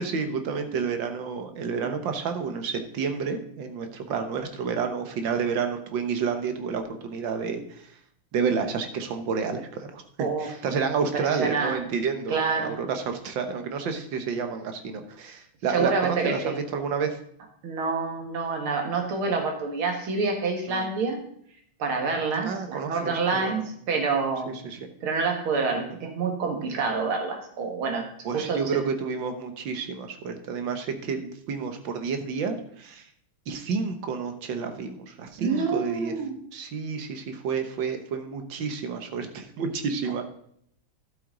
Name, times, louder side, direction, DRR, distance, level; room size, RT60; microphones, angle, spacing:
voice 1, 0.0-8.0 8.3-17.2 20.7-20.9 22.5-23.6 24.5-24.9 28.2-33.1 33.5-36.1 36.5-40.2, right 5 dB, 65° right, 7 dB, 1.8 m, -30 dB
voice 2, 11.0-11.8 12.3-12.8 15.7-16.6 17.6-21.2 21.8-24.5 25.0-28.1 28.3-28.6 35.4-36.4, right 4 dB, 85° right, 3 dB, 2.6 m, -27 dB
12.0 x 8.0 x 3.9 m, 0.67 s
omnidirectional pair, 2.3 m